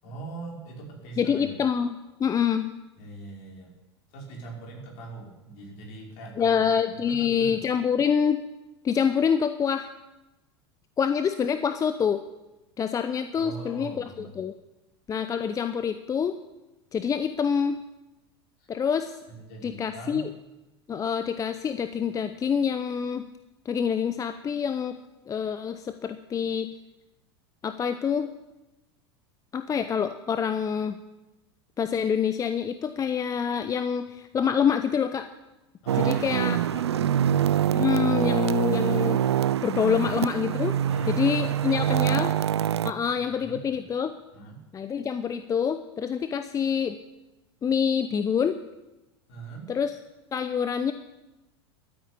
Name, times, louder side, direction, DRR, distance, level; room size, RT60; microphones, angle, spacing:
voice 1, 0.0-1.6 3.0-3.7 4.1-7.6 13.4-14.3 18.6-18.7 19.3-20.3 35.8-37.5 40.9-42.3 42.8-43.8 44.3-44.6 49.3-49.7, right 3 dB, 55° left, -2 dB, 5.4 m, -42 dB
voice 2, 1.2-2.7 6.4-8.4 8.8-9.9 11.0-12.2 12.8-14.0 14.4-14.5 15.1-16.4 16.9-17.8 18.7-19.2 19.6-20.3 20.9-23.2 23.7-25.0 25.3-26.7 27.6-28.3 29.5-31.0 31.8-35.3 36.0-36.6 37.7-39.2 39.6-40.8 41.1-42.3 42.8-44.1 44.7-47.0 47.6-48.6 49.7-49.9 50.3-50.9, left 7 dB, 25° left, 11 dB, 0.7 m, -26 dB
sound 1, 35.9-42.9, right 10 dB, 80° right, 0.4 m, -25 dB
13.0 x 9.1 x 8.3 m, 1.0 s
hypercardioid pair, 85°, 14 cm